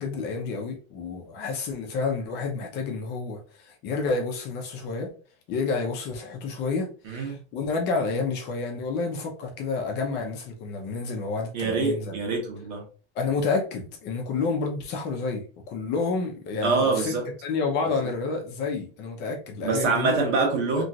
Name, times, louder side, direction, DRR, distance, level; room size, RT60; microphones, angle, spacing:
voice 1, 0.0-5.1 5.5-12.1 13.1-17.1 17.4-20.2 20.7-20.8, left 4 dB, 30° left, 0.6 m, -29 dB
voice 2, 7.0-7.4 11.5-12.8 16.6-17.3 19.6-20.8, right 4 dB, 85° right, 1.3 m, -25 dB
3.0 x 2.3 x 2.7 m
supercardioid pair, 165°, 34 cm